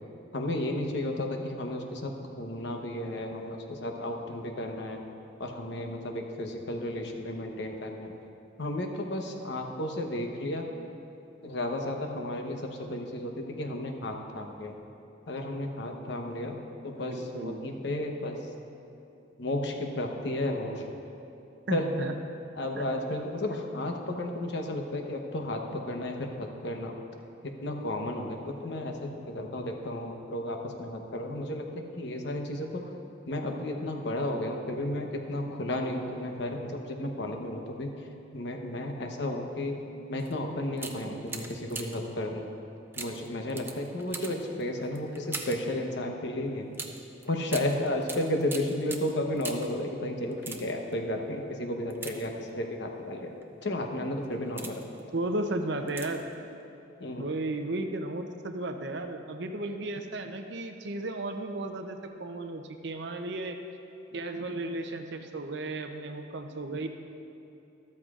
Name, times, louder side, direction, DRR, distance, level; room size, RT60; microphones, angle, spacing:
voice 1, 0.3-5.0 5.4-8.1 8.6-10.7 11.4-14.7 15.3-18.4 19.4-20.9 21.7-21.9 22.6-26.9 27.4-32.8 33.3-37.9 38.3-39.8 40.1-42.5 43.0-46.7 47.2-53.3 53.6-54.8 57.0-57.3, left 1 dB, 60° left, 2 dB, 1.0 m, -33 dB
voice 2, 17.0-17.7 21.7-22.1 22.7-22.8 55.1-56.2 57.2-63.6 64.1-66.9, right 2 dB, 60° right, 6 dB, 0.7 m, -34 dB
sound 1, 40.2-40.3 40.7-42.1 42.9-45.7 46.7-49.8 50.3-50.9 51.9-52.7 53.4-53.6 54.2-55.0 55.9-56.3 56.6-56.7, right 3 dB, 10° right, 0.5 m, -41 dB
13.0 x 13.0 x 2.5 m, 2.9 s
head